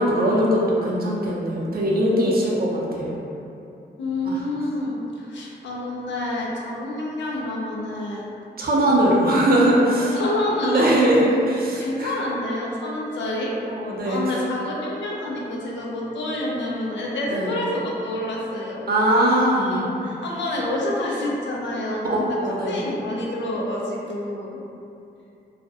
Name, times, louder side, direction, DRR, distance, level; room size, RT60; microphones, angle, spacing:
voice 1, 0.0-3.2 4.3-4.4 8.6-10.2 10.6-12.1 13.7-14.2 17.3-17.5 18.9-19.8 22.1-22.8, right 1 dB, 55° right, -4 dB, 0.6 m, -20 dB
voice 2, 4.0-8.3 10.0-11.0 11.8-13.5 14.0-18.8 19.4-22.4 22.7-24.6, left 1 dB, 80° left, -3 dB, 0.5 m, -28 dB
2.4 x 2.0 x 2.6 m, 2.7 s
cardioid pair, 60°, 19 cm